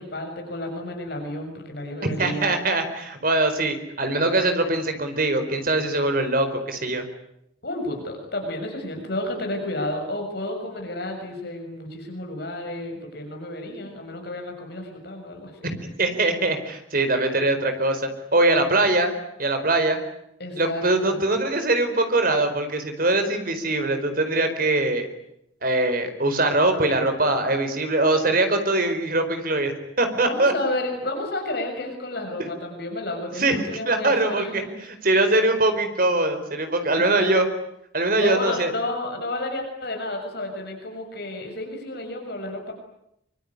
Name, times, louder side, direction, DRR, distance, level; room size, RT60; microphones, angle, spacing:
voice 1, 0.0-2.5 7.6-15.7 20.4-21.2 30.1-34.8 36.9-37.3 38.2-42.7, left 1 dB, 55° left, 3 dB, 6.8 m, -31 dB
voice 2, 2.2-7.1 15.6-19.1 19.4-20.0 20.6-25.1 25.6-30.5 33.3-34.6 35.0-37.5 37.9-38.7, right 2 dB, 50° right, 8 dB, 4.6 m, -22 dB
24.5 x 24.5 x 9.8 m, 0.78 s
head